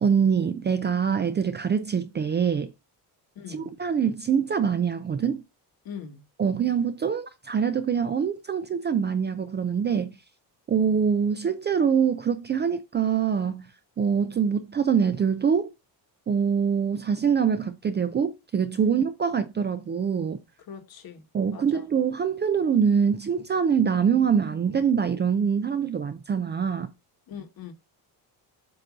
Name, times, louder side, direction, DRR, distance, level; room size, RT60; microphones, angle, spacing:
voice 1, 0.0-2.7 3.5-5.4 6.4-10.2 10.7-13.7 14.0-15.7 16.3-20.4 21.3-26.9, right 7 dB, 25° right, 0.4 m, -24 dB
voice 2, 3.3-3.7 5.8-6.2 20.7-21.2 21.5-21.8 27.3-27.7, left 7 dB, 55° left, 1.3 m, -41 dB
7.8 x 2.6 x 5.9 m
cardioid pair, 155°, 42 cm